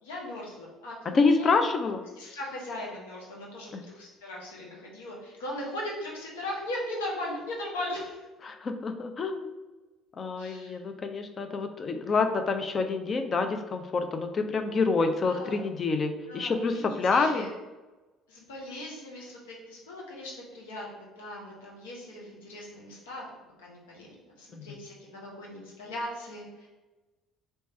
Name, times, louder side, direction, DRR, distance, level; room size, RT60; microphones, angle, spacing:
voice 1, 0.0-1.5 2.2-8.2 10.4-10.8 15.2-15.6 16.3-17.5 18.3-23.3 23.6-26.7, left 1 dB, 80° left, -3 dB, 1.1 m, -39 dB
voice 2, 1.1-2.0 3.7-3.8 8.4-9.5 10.2-17.5 24.5-24.8, left 4 dB, 40° left, 7 dB, 0.5 m, -27 dB
3.3 x 3.2 x 4.2 m, 1.2 s
hypercardioid pair, 55°, 0 cm